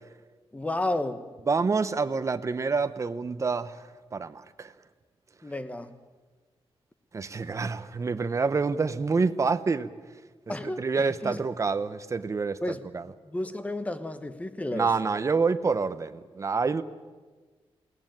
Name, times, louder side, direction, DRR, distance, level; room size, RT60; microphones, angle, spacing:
voice 1, 0.5-1.3 5.4-5.9 10.5-11.4 12.6-12.8 13.2-14.9, left 1 dB, 15° left, 1.1 m, -32 dB
voice 2, 1.5-3.8 4.1-4.7 7.1-9.9 10.8-13.1 14.7-16.8, right 4 dB, 30° right, 0.8 m, -27 dB
21.0 x 18.0 x 9.1 m
wide cardioid pair, 165°, 10 cm